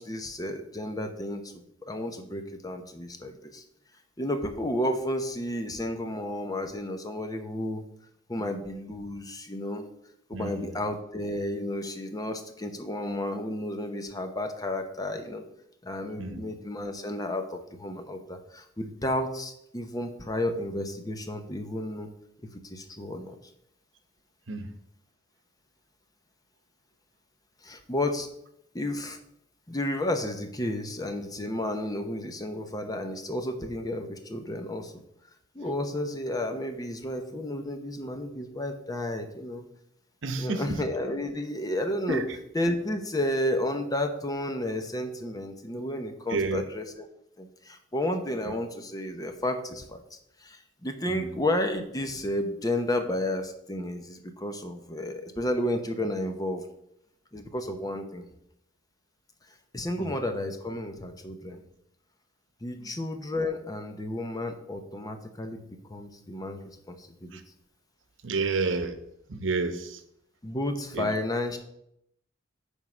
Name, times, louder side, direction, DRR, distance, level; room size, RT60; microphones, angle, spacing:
voice 1, 0.0-3.6 4.2-7.8 8.3-9.9 10.3-15.5 15.8-22.1 22.6-23.4 27.6-28.3 28.7-29.2 29.7-35.0 35.5-39.7 40.4-42.2 42.5-47.1 47.4-50.0 50.4-56.6 57.3-58.2 59.7-61.6 62.6-65.6 65.9-66.6 66.9-67.4 70.4-71.6, left 1 dB, 20° left, 7 dB, 0.8 m, -32 dB
voice 2, 10.3-10.7 16.2-16.4 24.5-24.7 40.2-40.8 42.1-42.2 46.3-46.6 51.1-51.3 60.0-60.1 62.8-62.9 67.3-67.4 68.2-69.0 69.3-70.0 70.9-71.1, right 3 dB, 85° right, 9 dB, 0.9 m, -30 dB
9.4 x 3.6 x 6.1 m, 0.77 s
head